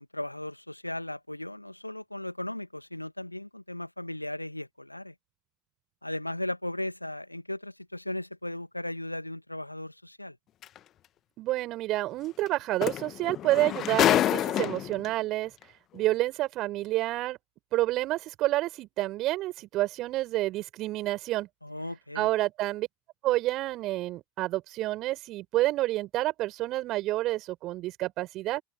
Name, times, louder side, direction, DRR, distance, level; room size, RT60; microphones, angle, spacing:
voice 1, 0.0-5.1 6.0-10.4 21.6-22.3, left 1 dB, 90° left, 2.3 m, -36 dB
sound 1, 10.6-10.8 12.5-12.6 12.8-15.1 16.0-16.1, left 12 dB, 35° left, 1.7 m, -26 dB
voice 2, 11.4-15.5 15.9-17.4 17.7-21.5 22.2-22.9 23.2-28.6, right 16 dB, 40° right, 5.5 m, -29 dB
open air
figure-of-eight pair, 80°, 0 cm